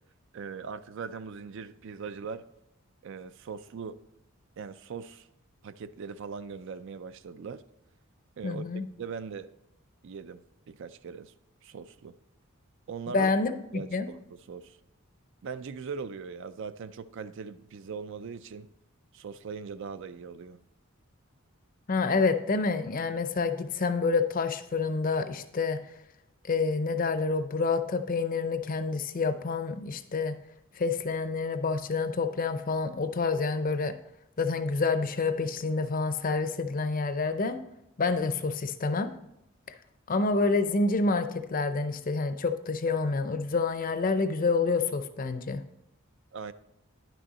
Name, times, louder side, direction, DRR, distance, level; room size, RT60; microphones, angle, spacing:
voice 1, 0.3-2.5 3.0-4.0 4.6-5.3 5.6-7.6 8.4-8.6 9.0-9.5 10.0-10.4 10.7-11.3 11.6-12.1 12.9-13.3 13.7-14.8 15.4-18.7 19.1-20.6 46.3-46.5, right 5 dB, 55° right, 13 dB, 0.4 m, -40 dB
voice 2, 8.4-8.8 13.1-14.1 21.9-25.8 26.4-30.3 30.8-33.9 34.4-37.6 38.0-39.1 40.1-45.6, left 4 dB, 40° left, 10 dB, 0.5 m, -28 dB
10.0 x 6.2 x 4.1 m, 0.84 s
head